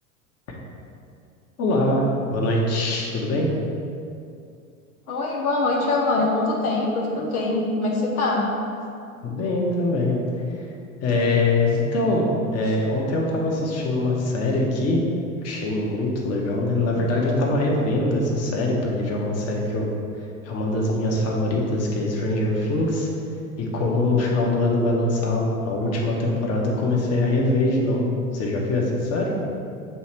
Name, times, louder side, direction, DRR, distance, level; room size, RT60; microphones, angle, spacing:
voice 1, 1.6-3.5 9.2-10.2 10.5-10.7 11.0-15.0 15.4-19.9 20.2-23.1 23.6-29.3, left 2 dB, 35° left, -1 dB, 1.2 m, -23 dB
voice 2, 5.1-8.5, left 2 dB, 80° left, -2 dB, 0.9 m, -23 dB
7.0 x 3.2 x 4.4 m, 2.5 s
hypercardioid pair, 85°, 43 cm